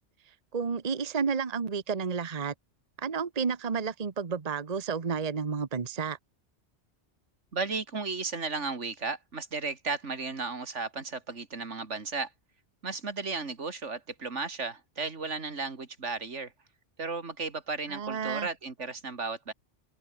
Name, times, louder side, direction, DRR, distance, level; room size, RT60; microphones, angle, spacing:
voice 1, 0.5-2.5 3.0-6.2 17.9-18.5, right 6 dB, 35° right, 1.1 m, -31 dB
voice 2, 7.5-12.3 12.8-16.5 17.0-19.5, right 4 dB, 85° right, 2.7 m, -34 dB
omnidirectional pair, 1.2 m